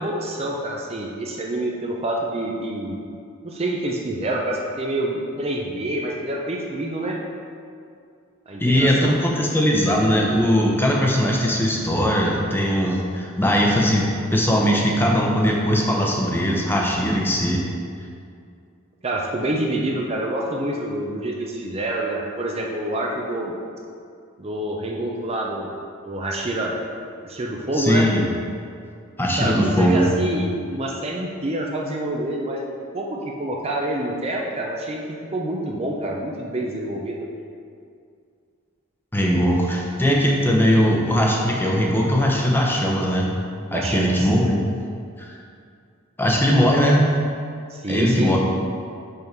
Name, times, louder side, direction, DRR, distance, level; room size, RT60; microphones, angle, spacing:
voice 1, 0.0-3.0 3.4-7.2 8.5-9.1 19.0-23.5 24.4-25.7 26.0-26.7 27.2-28.1 29.4-32.7 32.9-37.2 43.7-44.3 47.7-48.4, right 1 dB, 30° right, -1 dB, 0.6 m, -27 dB
voice 2, 8.6-17.6 27.7-28.2 29.2-30.1 39.1-43.3 43.7-44.6 45.2-45.3 46.2-47.2 47.9-48.4, equal, 10° left, -2 dB, 0.8 m, -20 dB
5.5 x 5.4 x 4.6 m, 2.3 s
head